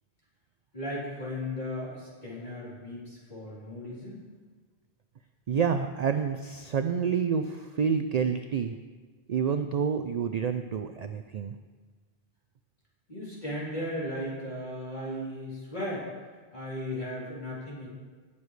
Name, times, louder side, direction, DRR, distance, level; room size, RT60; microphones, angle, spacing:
voice 1, 0.7-4.2 13.1-16.1 16.5-17.9, left 1 dB, 40° left, -8 dB, 3.6 m, -36 dB
voice 2, 5.5-8.7 9.3-11.6, right 6 dB, 55° right, 8 dB, 0.4 m, -28 dB
18.5 x 7.0 x 3.3 m, 1.4 s
omnidirectional pair, 1.1 m